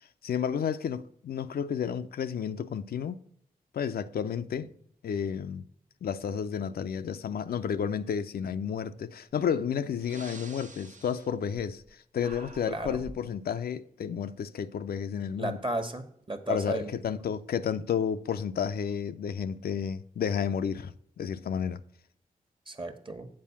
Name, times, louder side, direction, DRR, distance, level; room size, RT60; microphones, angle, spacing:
voice 1, 0.2-3.2 3.7-4.7 5.0-5.6 6.0-11.8 12.1-15.6 16.5-20.9 21.2-21.8, left 7 dB, 85° left, 0.5 m, -31 dB
Breathing, 9.3-9.5 9.9-11.9 12.2-13.3, right 2 dB, 55° right, 0.9 m, -47 dB
voice 2, 12.7-13.0 15.4-17.0 22.7-23.3, right 2 dB, 35° right, 1.2 m, -34 dB
7.5 x 4.5 x 7.1 m
cardioid pair, 55°, 15 cm